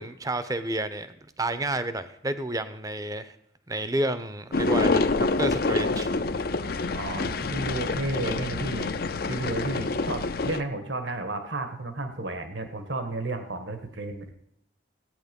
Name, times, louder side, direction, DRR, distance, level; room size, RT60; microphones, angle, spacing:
voice 1, 0.0-3.3 3.7-6.1, right 1 dB, 20° right, 13 dB, 0.7 m, -30 dB
sound 1, 4.5-10.6, left 3 dB, 50° left, 0.6 m, -27 dB
voice 2, 6.9-9.0 9.3-14.3, right 2 dB, 70° right, 7 dB, 1.5 m, -32 dB
16.0 x 9.0 x 5.3 m, 0.78 s
head